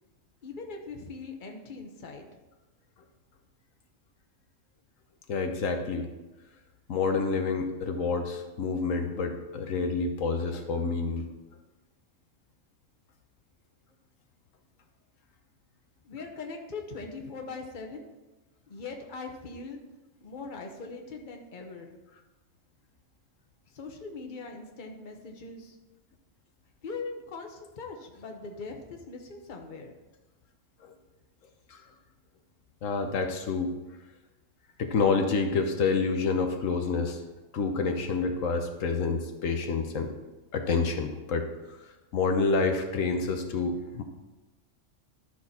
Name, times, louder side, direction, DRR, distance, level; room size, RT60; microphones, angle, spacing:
voice 1, 0.4-2.3 16.0-18.1 18.7-19.8 20.2-21.9 23.7-25.7 26.8-29.9, left 4 dB, 40° left, 3 dB, 1.2 m, -41 dB
voice 2, 5.3-6.1 6.9-11.3 31.7-31.8 32.8-33.7 34.8-37.2 37.5-40.1 40.5-41.4 42.1-44.0, left 4 dB, 85° left, 5 dB, 1.3 m, -28 dB
12.0 x 6.3 x 4.2 m, 1.1 s
omnidirectional pair, 1.3 m